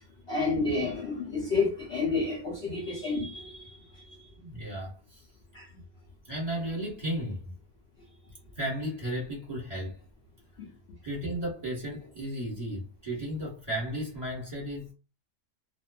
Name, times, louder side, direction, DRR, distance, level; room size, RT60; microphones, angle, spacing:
voice 1, 0.3-4.2 5.5-5.7 10.6-10.7, left 3 dB, 55° left, 0.7 m, -30 dB
voice 2, 4.4-5.2 5.7-5.8 6.3-7.6 8.6-10.0 11.0-14.9, right 1 dB, 25° right, 1.1 m, -34 dB
2.6 x 2.3 x 2.3 m
omnidirectional pair, 1.6 m